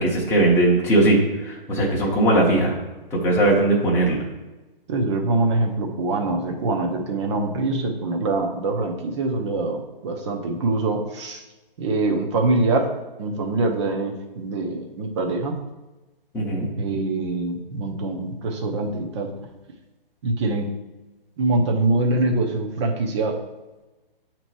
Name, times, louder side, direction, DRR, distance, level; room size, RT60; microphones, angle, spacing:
voice 1, 0.0-2.7 3.1-4.2 16.3-16.7, right 1 dB, 10° left, -3 dB, 0.9 m, -19 dB
voice 2, 4.9-11.4 11.8-12.9 13.2-15.5 16.8-19.3 20.2-20.7 21.4-23.4, right 2 dB, 30° right, 2 dB, 0.8 m, -24 dB
8.7 x 3.0 x 4.6 m, 1.1 s
figure-of-eight pair, 145°, 29 cm